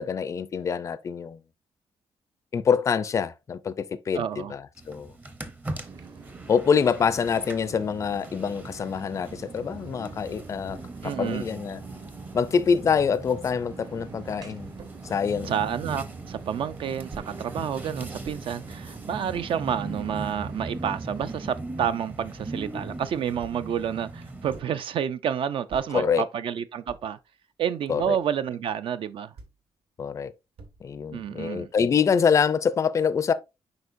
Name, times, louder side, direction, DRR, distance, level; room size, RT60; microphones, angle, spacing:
voice 1, 0.0-1.4 2.5-5.1 6.5-11.8 12.3-14.7 15.1-15.5 25.9-26.2 27.9-28.2 30.0-30.3 30.8-33.3, left 6 dB, 30° left, 0.4 m, -25 dB
voice 2, 4.1-4.5 11.0-11.5 15.4-27.2 27.6-29.3 31.1-31.7, right 8 dB, 60° right, 0.4 m, -29 dB
sound 1, 4.8-24.6, right 2 dB, 15° right, 0.6 m, -40 dB
sound 2, 5.8-21.5, right 4 dB, 40° right, 0.9 m, -45 dB
sound 3, 14.8-15.0 15.9-16.1 17.1-17.4 18.2-18.4 19.1-19.5 20.3-20.4 20.6-21.6 23.4-23.8 24.5-24.8 25.7-26.0 26.9-27.2 28.0-28.3 29.4-29.6 30.6-31.0, right 4 dB, 80° right, 1.6 m, -47 dB
8.0 x 5.0 x 2.5 m
wide cardioid pair, 180°, 10 cm